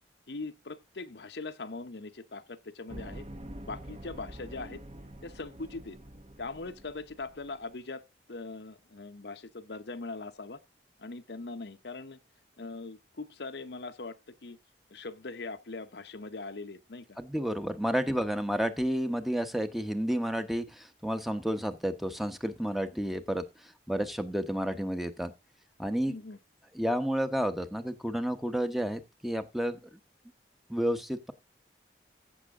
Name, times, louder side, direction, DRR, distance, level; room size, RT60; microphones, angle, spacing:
voice 1, 0.3-3.2 3.6-4.8 5.2-6.0 6.4-8.0 8.3-10.6 11.0-12.2 12.6-14.6 14.9-17.2 26.1-26.4, left 3 dB, 70° left, 0.9 m, -41 dB
sound 1, 2.9-7.7, right 1 dB, 35° right, 0.9 m, -46 dB
voice 2, 17.2-25.3 25.8-26.2 26.7-29.8 30.7-31.3, equal, ahead, 1.0 m, -31 dB
15.0 x 6.4 x 3.6 m
head